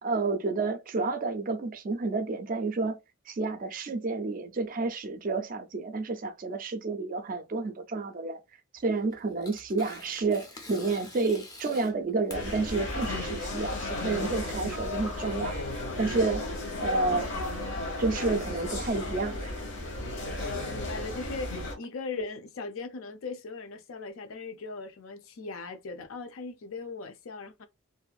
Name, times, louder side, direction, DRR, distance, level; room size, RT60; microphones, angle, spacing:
voice 1, 0.0-3.0 3.3-8.4 8.7-15.6 16.0-16.4 16.8-17.3 18.0-19.4, right 3 dB, 40° right, 0.4 m, -30 dB
Tearing, 8.8-15.5, left 2 dB, 15° left, 0.5 m, -48 dB
sound 1, 12.3-21.8, left 2 dB, 55° left, 1.0 m, -34 dB
voice 2, 20.4-27.7, left 3 dB, 70° left, 0.5 m, -39 dB
2.6 x 2.4 x 2.3 m
head